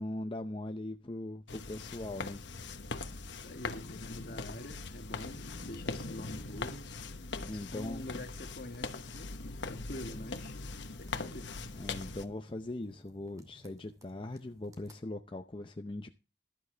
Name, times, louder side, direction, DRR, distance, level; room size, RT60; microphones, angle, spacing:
voice 1, 0.0-2.4 7.4-8.1 11.7-16.1, left 1 dB, 30° left, 0.6 m, -40 dB
sound 1, 1.5-12.2, left 3 dB, 85° left, 1.1 m, -41 dB
voice 2, 3.3-6.9 7.5-10.5 11.0-11.5, left 1 dB, 55° left, 1.6 m, -46 dB
sound 2, 8.7-15.0, equal, 20° right, 2.5 m, -62 dB
13.0 x 12.5 x 3.3 m
head